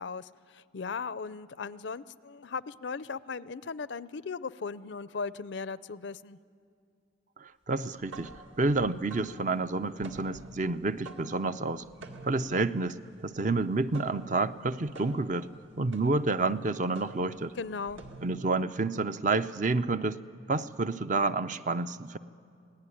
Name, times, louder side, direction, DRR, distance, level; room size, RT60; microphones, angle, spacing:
voice 1, 0.0-6.4 17.6-18.0, left 5 dB, 65° left, 16 dB, 0.5 m, -37 dB
voice 2, 7.4-8.3 8.6-11.8 12.2-15.5 15.8-17.5 18.2-20.2 20.5-22.2, right 3 dB, 40° right, 12 dB, 0.5 m, -29 dB
sound 1, 8.0-18.6, right 2 dB, 70° right, 2.0 m, -49 dB
27.5 x 18.0 x 10.0 m, 2.4 s
head